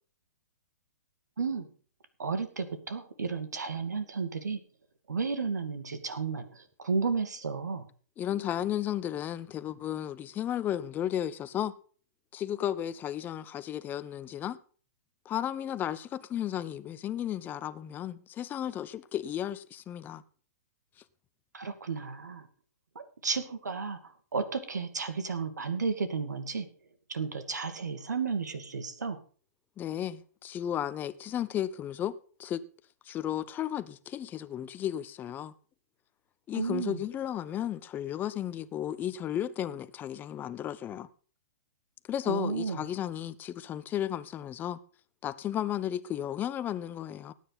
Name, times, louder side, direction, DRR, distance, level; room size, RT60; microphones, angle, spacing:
voice 1, 1.4-1.7 2.2-4.6 5.1-7.9 21.5-22.5 23.2-26.7 27.1-29.2 36.5-37.0 42.3-42.9, right 5 dB, 75° right, 2.3 m, -33 dB
voice 2, 8.2-11.7 12.3-14.6 15.2-20.2 29.8-32.1 32.4-32.6 33.1-35.5 36.5-41.1 42.1-44.8 45.2-47.3, left 11 dB, 20° left, 0.8 m, -34 dB
18.5 x 9.3 x 4.1 m
figure-of-eight pair, 120°, 9 cm